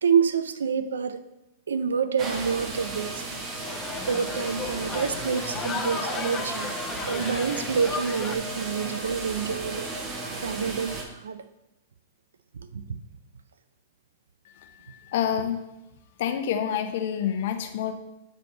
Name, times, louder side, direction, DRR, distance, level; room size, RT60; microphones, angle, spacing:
voice 1, 0.0-1.2 1.7-3.2 4.1-6.7 7.1-9.9 10.4-11.4 12.5-13.0, right 6 dB, 90° right, 12 dB, 0.4 m, -27 dB
sound 1, 2.2-11.0, right 2 dB, 35° right, 1.1 m, -34 dB
sound 2, 3.1-8.4, left 4 dB, 25° left, 0.7 m, -35 dB
voice 2, 14.6-15.6 16.2-17.9, left 9 dB, 65° left, 7 dB, 0.7 m, -28 dB
8.2 x 3.5 x 3.8 m, 0.95 s
hypercardioid pair, 115°, 0 cm